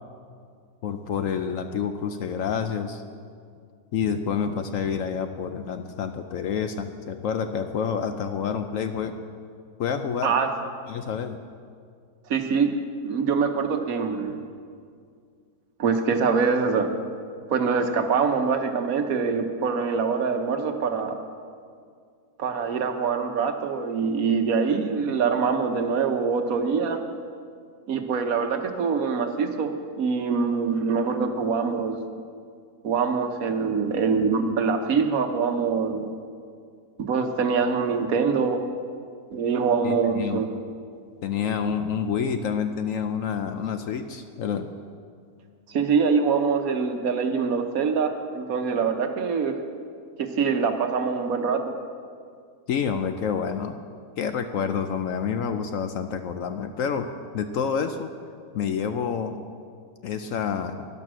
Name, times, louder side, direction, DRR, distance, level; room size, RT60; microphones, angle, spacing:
voice 1, 0.8-3.0 3.9-9.2 9.8-10.3 10.9-11.4 39.8-40.4 41.2-44.7 52.7-53.8 54.2-58.1 58.5-59.4 60.0-60.9, left 7 dB, 65° left, 8 dB, 0.9 m, -28 dB
voice 2, 10.2-10.6 12.3-12.7 13.0-14.4 15.8-16.9 17.5-21.2 22.4-27.0 27.9-29.7 30.0-32.0 32.8-36.1 37.0-38.6 39.3-40.5 45.7-49.5 50.2-51.7, right 5 dB, 65° right, 6 dB, 1.3 m, -24 dB
12.0 x 10.5 x 6.2 m, 2.2 s
omnidirectional pair, 1.7 m